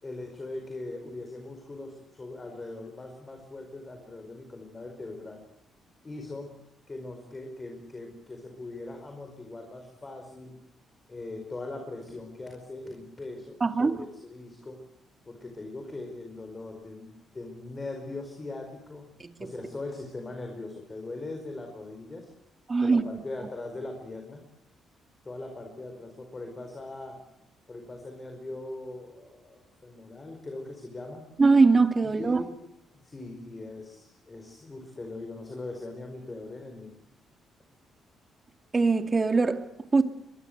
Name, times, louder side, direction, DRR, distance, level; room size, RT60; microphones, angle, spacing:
voice 1, 0.0-5.4 6.0-6.5 6.9-10.6 11.1-14.8 15.3-19.1 19.4-22.3 22.8-24.4 25.2-27.2 27.7-31.3 32.0-32.5 33.0-36.9, left 2 dB, 25° left, 4.9 m, -40 dB
voice 2, 13.6-14.0 19.4-19.5 22.7-23.0 31.4-32.4 38.7-40.0, right 4 dB, 30° right, 2.2 m, -22 dB
24.0 x 22.0 x 8.1 m
cardioid pair, 90°, 0 cm